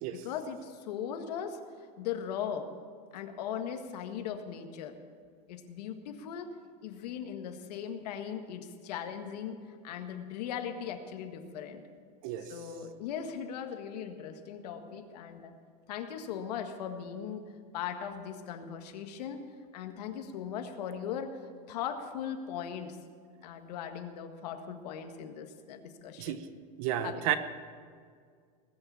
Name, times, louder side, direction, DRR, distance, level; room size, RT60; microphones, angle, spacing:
voice 1, 0.1-2.7 3.1-5.0 5.5-6.5 6.8-11.8 12.4-15.5 15.9-19.4 19.7-23.0 23.4-26.4 27.0-27.4, left 8 dB, 85° left, 6 dB, 1.7 m, -39 dB
voice 2, 26.8-27.4, right 12 dB, 60° right, 11 dB, 1.1 m, -31 dB
20.0 x 6.8 x 8.6 m, 2.1 s
supercardioid pair, 150°, 20 cm